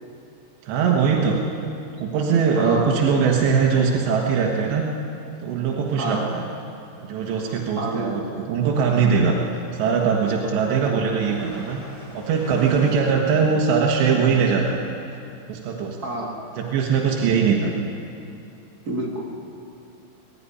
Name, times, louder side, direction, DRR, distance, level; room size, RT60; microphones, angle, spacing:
voice 1, 0.6-1.4 2.0-4.9 5.4-6.4 7.0-9.4 9.7-11.8 12.1-14.8 15.5-16.0 16.6-17.7, right 6 dB, 90° right, -1 dB, 3.7 m, -21 dB
voice 2, 2.6-3.0 6.0-6.3 7.8-8.3 16.0-16.4 18.9-19.2, right 2 dB, 30° right, -1 dB, 1.9 m, -28 dB
sound 1, 7.1-13.1, right 1 dB, 10° right, 2.7 m, -46 dB
21.0 x 13.5 x 9.9 m, 2.6 s
omnidirectional pair, 4.9 m